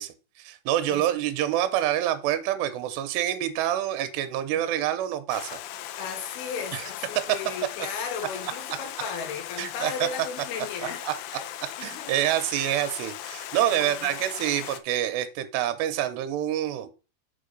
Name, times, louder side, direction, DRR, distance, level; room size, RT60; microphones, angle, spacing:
voice 1, 0.0-5.6 6.7-6.8 7.2-7.3 9.6-10.1 11.0-11.1 11.8-16.9, right 12 dB, 80° right, 2.9 m, -27 dB
Stream, 5.3-14.8, left 12 dB, 90° left, 3.0 m, -38 dB
voice 2, 6.0-11.5 11.8-12.2 13.5-14.1, left 6 dB, 70° left, 3.3 m, -36 dB
7.1 x 4.8 x 5.2 m
omnidirectional pair, 5.0 m